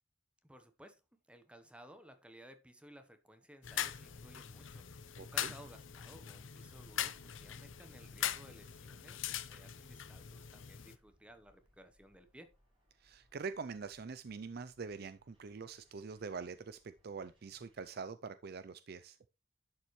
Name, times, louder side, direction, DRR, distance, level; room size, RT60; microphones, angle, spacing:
voice 1, 0.4-12.5, equal, 5° right, 0.9 m, -58 dB
sound 1, 3.6-11.0, left 10 dB, 75° left, 0.7 m, -42 dB
voice 2, 5.2-5.5 13.0-19.2, right 5 dB, 50° right, 0.4 m, -44 dB
sound 2, 6.6-17.9, equal, 25° right, 6.0 m, -72 dB
11.0 x 7.3 x 3.1 m
head